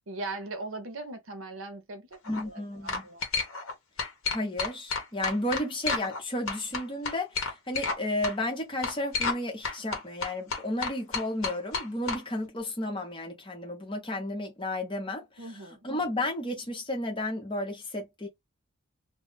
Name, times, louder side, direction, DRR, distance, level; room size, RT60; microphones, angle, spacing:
voice 1, 0.1-2.2 2.4-3.2 15.4-15.9, right 2 dB, 65° right, 0.7 m, -39 dB
sound 1, 2.1-2.4 2.9-3.7 4.0-6.2 6.5-8.0 8.2-8.3 8.8-9.4 9.6-12.2, left 4 dB, 65° left, 0.8 m, -31 dB
voice 2, 2.3-3.0 4.3-15.3 15.8-18.3, left 1 dB, 25° left, 0.8 m, -32 dB
2.3 x 2.1 x 3.7 m
head